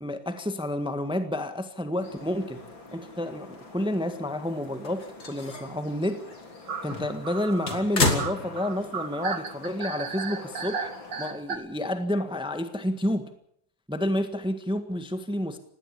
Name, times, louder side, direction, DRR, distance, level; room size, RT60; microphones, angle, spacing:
voice 1, 0.0-2.6 2.9-6.3 6.8-10.9 11.2-13.3 13.9-15.6, left 1 dB, 5° right, 8 dB, 1.4 m, -30 dB
sound 1, 2.0-11.3, left 3 dB, 85° left, 4.6 m, -46 dB
sound 2, 2.4-2.7 2.9-3.0 3.3-3.4 4.3-4.6 6.7-11.6, right 6 dB, 70° right, 2.4 m, -35 dB
sound 3, 4.6-5.8 6.2-6.4 6.8-9.0 9.3-9.4 10.6-10.7, left 3 dB, 55° left, 3.6 m, -30 dB
19.0 x 17.0 x 8.6 m, 0.68 s
omnidirectional pair, 2.1 m